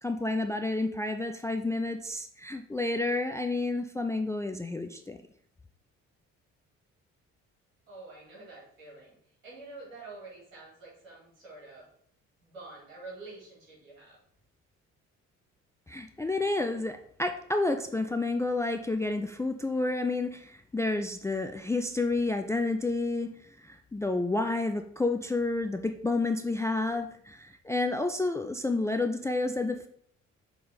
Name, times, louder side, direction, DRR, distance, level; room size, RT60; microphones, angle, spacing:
voice 1, 0.0-5.2 15.9-23.3 23.6-29.9, left 2 dB, 10° left, 7 dB, 0.3 m, -30 dB
voice 2, 7.9-9.2 9.4-11.9 12.4-14.2, right 3 dB, 80° right, -6 dB, 2.3 m, -47 dB
6.6 x 3.6 x 3.9 m, 0.64 s
figure-of-eight pair, 45°, 40 cm